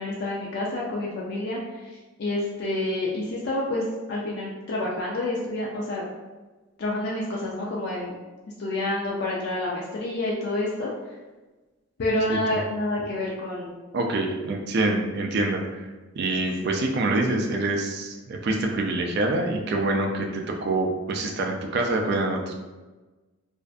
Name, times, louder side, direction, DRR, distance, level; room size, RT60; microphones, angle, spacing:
voice 1, 0.0-6.0 6.8-8.2 8.6-10.9 12.0-13.8 16.6-16.7, left 1 dB, 50° left, -4 dB, 0.3 m, -28 dB
voice 2, 13.9-15.9 16.2-22.5, right 2 dB, 50° right, 1 dB, 0.3 m, -26 dB
2.5 x 2.4 x 2.2 m, 1.2 s
head